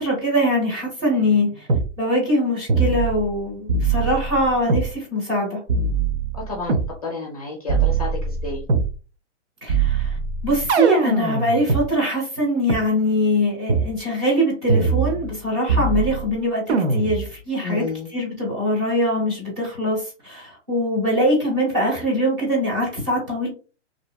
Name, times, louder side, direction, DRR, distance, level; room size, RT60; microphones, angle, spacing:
voice 1, 0.0-1.7 2.0-5.6 9.6-10.2 10.4-23.5, equal, 20° right, -4 dB, 1.0 m, -22 dB
sound 1, 1.7-1.9 2.7-3.4 3.7-4.9 5.7-6.9 7.7-8.9 9.7-11.8 12.7-12.8 13.7-13.9 14.7-15.4 15.7-16.3 16.7-17.3, right 4 dB, 65° right, 0.6 m, -22 dB
voice 2, 6.3-8.6 17.6-18.1, left 3 dB, 35° left, -1 dB, 0.5 m, -31 dB
2.6 x 2.1 x 2.2 m, 0.36 s
hypercardioid pair, 175°, 36 cm